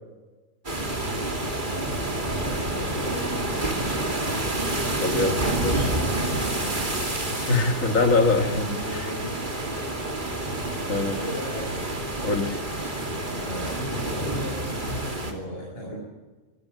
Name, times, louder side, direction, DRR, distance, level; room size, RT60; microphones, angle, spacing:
sound 1, 0.6-15.3, right 1 dB, 35° right, 2.9 m, -28 dB
voice 1, 1.6-4.4 5.9-6.7 8.4-9.3 11.1-11.9 13.3-16.0, equal, 50° left, -3 dB, 6.7 m, -36 dB
voice 2, 5.0-5.9 7.5-9.1 10.9-11.2 12.2-12.6, left 3 dB, 90° left, 7 dB, 2.4 m, -24 dB
25.5 x 15.5 x 7.9 m, 1.2 s
omnidirectional pair, 1.4 m